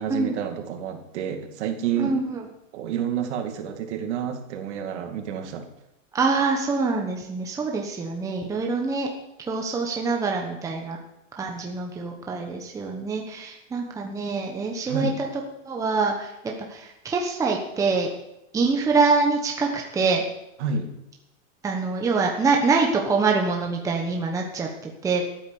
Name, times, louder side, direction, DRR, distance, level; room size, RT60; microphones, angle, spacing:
voice 1, 0.0-2.2 2.7-5.7 14.9-15.2 20.6-20.9, right 7 dB, 55° right, 5 dB, 2.4 m, -29 dB
voice 2, 2.0-2.4 6.1-9.1 9.5-11.0 11.4-15.3 15.7-16.3 16.7-18.1 18.5-20.2 21.6-25.2, right 4 dB, 10° right, 1 dB, 1.1 m, -25 dB
13.0 x 9.1 x 7.0 m, 0.85 s
supercardioid pair, 155°, 40 cm